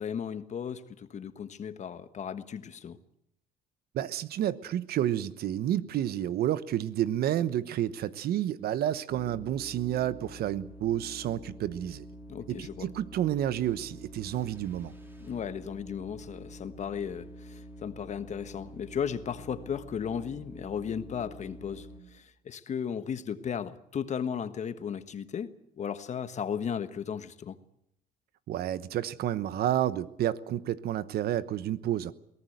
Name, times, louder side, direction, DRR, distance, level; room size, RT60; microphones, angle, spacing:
voice 1, 0.0-3.0 12.3-12.9 15.2-27.6, left 7 dB, 45° left, 12 dB, 1.4 m, -35 dB
voice 2, 3.9-12.0 12.5-14.9 28.5-32.1, right 11 dB, 65° right, 16 dB, 1.1 m, -30 dB
sound 1, 9.1-22.0, equal, 15° right, 4.5 m, -47 dB
23.0 x 18.0 x 8.0 m, 0.76 s
cardioid pair, 110°, 17 cm